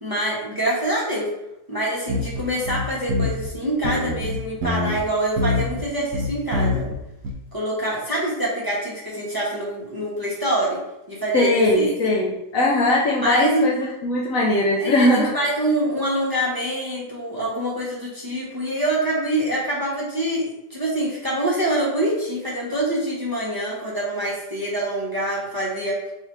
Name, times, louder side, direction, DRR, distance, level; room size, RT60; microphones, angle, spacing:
voice 1, 0.0-1.3 1.7-6.9 7.5-10.8 11.1-11.5 11.7-11.9 13.2-13.6 14.8-26.0, right 1 dB, 20° right, -5 dB, 0.7 m, -25 dB
sound 1, 2.1-3.5 3.8-5.0 5.4-5.8 6.1-7.0 7.2-7.3, left 2 dB, 70° right, 0.8 m, -24 dB
voice 2, 11.3-15.3, left 1 dB, 65° left, -3 dB, 0.9 m, -20 dB
3.2 x 2.8 x 4.5 m, 0.90 s
omnidirectional pair, 1.7 m